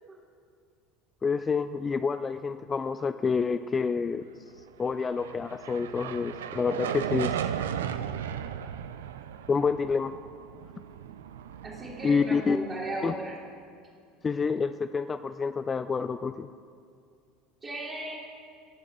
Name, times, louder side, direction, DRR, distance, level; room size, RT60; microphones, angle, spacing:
voice 1, 1.2-4.2 4.8-7.3 9.5-10.2 12.0-12.6 13.0-13.2 14.2-16.5, left 5 dB, 25° left, 11 dB, 0.3 m, -28 dB
sound 1, 4.9-13.3, right 9 dB, 70° right, 0.4 m, -36 dB
voice 2, 11.6-13.4 17.6-18.2, right 2 dB, 30° right, -7 dB, 2.5 m, -35 dB
20.5 x 7.0 x 3.2 m, 2.3 s
figure-of-eight pair, 70°, 0 cm